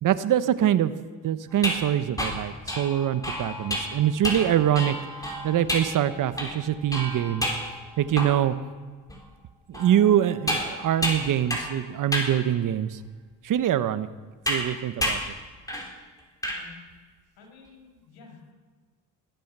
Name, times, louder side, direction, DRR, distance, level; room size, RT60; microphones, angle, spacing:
voice 1, 0.0-0.9 1.2-4.9 5.4-7.5 8.0-8.5 9.7-13.0 13.4-14.1 14.5-15.2, right 11 dB, 60° right, 13 dB, 1.0 m, -24 dB
sound 1, 1.5-8.6 9.1-9.2 9.7-11.8 12.1-12.4 13.0-13.1 14.5-14.7 15.0-15.3 15.7-15.9 16.2-16.6, equal, 10° left, 4.5 m, -30 dB
voice 2, 17.4-18.5, left 4 dB, 85° left, 2 dB, 5.4 m, -51 dB
20.5 x 9.2 x 6.8 m, 1.4 s
cardioid pair, 80°, 36 cm